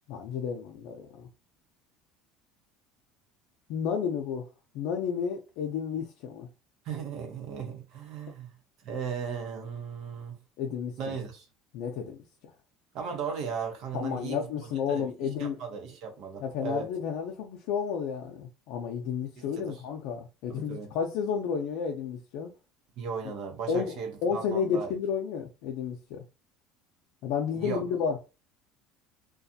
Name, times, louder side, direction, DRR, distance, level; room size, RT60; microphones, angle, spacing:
voice 1, 0.1-1.3 3.7-6.5 10.6-11.2 11.7-12.5 13.9-15.6 16.4-22.5 23.7-26.2 27.2-28.2, left 7 dB, 75° left, 0.5 m, -32 dB
voice 2, 6.8-8.5 8.8-10.4 11.0-11.4 12.9-14.4 14.9-16.9 19.4-19.8 20.5-20.9 23.0-24.9 27.6-27.8, right 6 dB, 65° right, 0.9 m, -36 dB
2.4 x 2.3 x 2.7 m
supercardioid pair, 115°, 0 cm